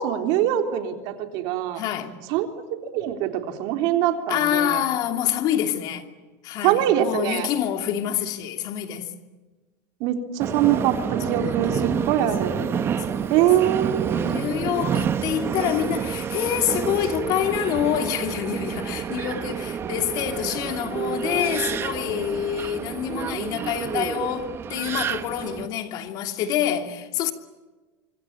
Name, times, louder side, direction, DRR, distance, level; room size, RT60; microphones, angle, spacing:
voice 1, 0.0-1.8 2.3-4.8 6.6-7.5 10.0-12.6 13.3-14.2, right 11 dB, 60° right, 3.5 m, -23 dB
voice 2, 1.7-2.1 4.3-6.0 6.4-9.1 10.6-27.3, left 10 dB, 50° left, 2.8 m, -27 dB
Subway metro underground, 10.4-25.7, right 7 dB, 30° right, 1.5 m, -29 dB
25.5 x 25.5 x 8.8 m
supercardioid pair, 125°, 8 cm